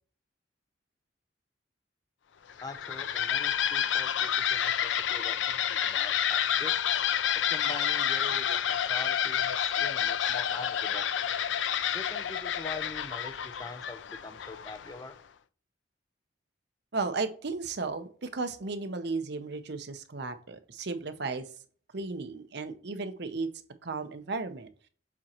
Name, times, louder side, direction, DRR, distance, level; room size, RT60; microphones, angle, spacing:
sound 1, 2.5-15.0, left 9 dB, 80° left, 0.5 m, -29 dB
voice 1, 2.6-6.7 7.5-11.1 11.9-15.2, left 3 dB, 20° left, 10 dB, 0.5 m, -44 dB
voice 2, 16.9-21.5 21.9-23.5 23.8-24.7, right 3 dB, 65° right, 9 dB, 0.8 m, -34 dB
7.3 x 4.2 x 3.0 m, 0.42 s
head